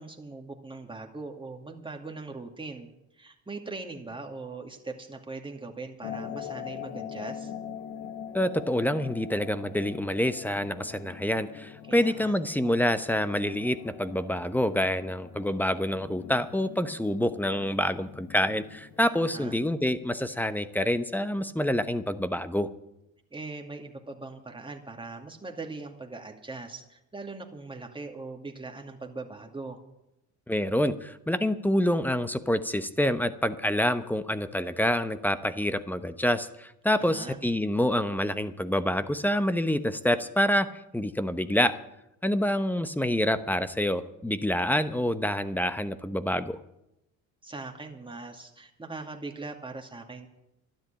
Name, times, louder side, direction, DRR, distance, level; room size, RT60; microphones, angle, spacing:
voice 1, 0.0-2.9 3.2-7.5 11.8-12.3 19.2-19.6 23.3-29.8 37.0-37.4 47.4-50.3, right 3 dB, 15° right, 2 dB, 2.4 m, -40 dB
sound 1, 6.0-19.8, left 9 dB, 75° left, 1.2 m, -43 dB
voice 2, 8.3-22.7 30.5-40.7 40.9-41.8 42.2-46.6, left 1 dB, 5° left, 11 dB, 1.0 m, -27 dB
12.0 x 10.5 x 8.7 m, 0.86 s
supercardioid pair, 80°, 36 cm